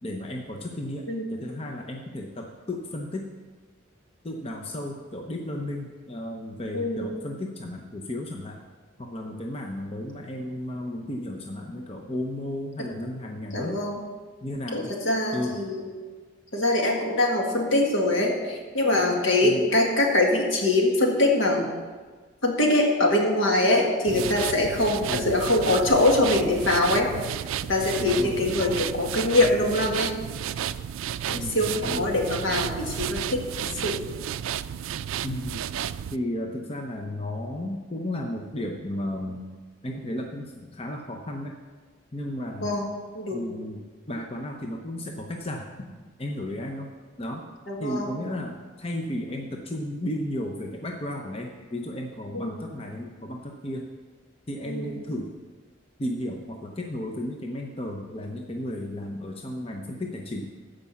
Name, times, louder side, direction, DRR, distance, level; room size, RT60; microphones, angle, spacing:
voice 1, 0.0-3.3 4.2-8.6 9.0-13.8 14.4-14.9 15.3-15.6 19.4-19.7 24.1-24.3 25.1-25.3 28.0-28.8 31.3-32.1 35.2-35.7 36.1-39.4 39.8-41.6 42.1-42.8 43.3-45.7 46.2-47.5 47.8-53.9 54.5-55.3 56.0-60.5, left 1 dB, 30° left, 1 dB, 0.7 m, -34 dB
voice 2, 6.7-7.2 13.5-14.0 14.7-15.9 16.5-21.7 22.4-27.1 27.7-30.1 31.3-33.9 42.6-42.9 43.1-43.4 47.7-48.1 52.3-52.6 54.7-54.9, left 2 dB, 75° left, 0 dB, 1.9 m, -23 dB
sound 1, 24.1-36.2, right 9 dB, 80° right, 0.3 m, -32 dB
14.5 x 5.2 x 5.7 m, 1.4 s
head